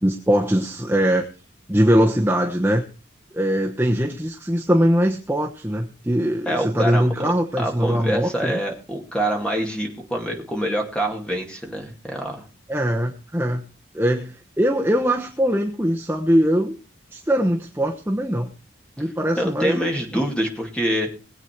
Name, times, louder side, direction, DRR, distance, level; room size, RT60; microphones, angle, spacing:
voice 1, 0.0-1.2 1.7-2.8 3.3-8.6 12.7-13.6 13.9-16.8 17.1-18.5 19.0-20.2, equal, 10° right, 0 dB, 1.1 m, -21 dB
voice 2, 6.5-12.4 19.4-21.1, right 1 dB, 5° left, 1 dB, 2.3 m, -26 dB
20.5 x 8.2 x 4.6 m, 0.34 s
head